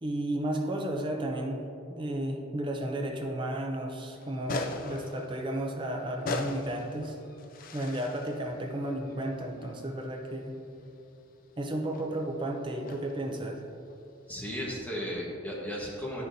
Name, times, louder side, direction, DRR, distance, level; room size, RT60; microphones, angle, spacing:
voice 1, 0.0-1.6 1.9-7.2 7.7-10.6 11.6-13.6, right 1 dB, 20° right, 2 dB, 0.5 m, -33 dB
sound 1, 4.1-15.1, left 3 dB, 40° left, 0.4 m, -41 dB
voice 2, 14.3-16.2, equal, 5° left, -5 dB, 1.3 m, -35 dB
8.9 x 6.4 x 2.7 m, 2.5 s
head